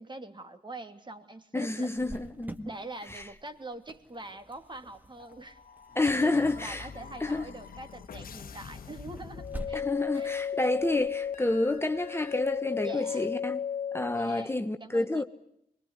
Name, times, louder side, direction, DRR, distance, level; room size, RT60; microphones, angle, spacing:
voice 1, 0.0-1.9 2.6-5.6 6.1-9.8 10.1-10.3 12.8-13.3 14.1-15.2, right 2 dB, 35° right, 2.8 m, -44 dB
voice 2, 1.5-2.7 3.1-3.3 5.9-6.9 7.2-7.4 9.7-13.6 13.9-15.2, left 2 dB, 15° left, 1.2 m, -29 dB
Cricket, 2.0-13.4, right 1 dB, 10° right, 1.9 m, -49 dB
sound 1, 5.2-10.2, left 6 dB, 80° left, 1.2 m, -46 dB
sound 2, 9.4-14.3, left 8 dB, 60° left, 1.1 m, -34 dB
24.5 x 21.0 x 9.8 m
cardioid pair, 65°, 15 cm